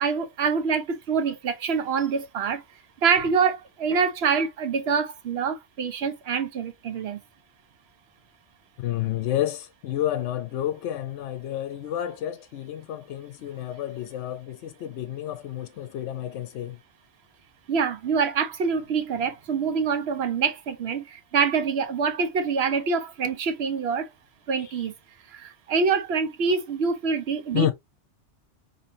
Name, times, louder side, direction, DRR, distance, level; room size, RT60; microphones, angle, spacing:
voice 1, 0.0-2.6 3.0-7.2 17.7-24.1 24.5-24.9 25.3-27.7, right 5 dB, 65° right, 0.8 m, -25 dB
voice 2, 8.8-16.8 24.6-24.8 27.5-27.7, left 12 dB, 75° left, 0.9 m, -30 dB
4.3 x 2.9 x 2.6 m
omnidirectional pair, 1.2 m